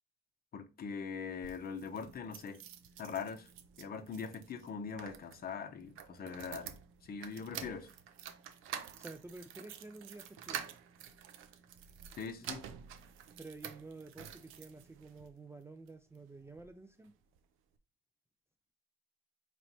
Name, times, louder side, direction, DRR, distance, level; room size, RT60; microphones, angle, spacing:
voice 1, 0.5-2.6 3.0-3.5 3.8-7.9 12.2-12.7, left 6 dB, 50° left, 0.7 m, -42 dB
sound 1, 1.3-15.3 15.9-16.7 17.0-17.1 17.4-17.5, right 9 dB, 90° right, 0.5 m, -49 dB
voice 2, 9.0-10.6 13.4-17.1, right 3 dB, 15° right, 0.4 m, -50 dB
4.0 x 3.1 x 2.8 m
cardioid pair, 90°, 20 cm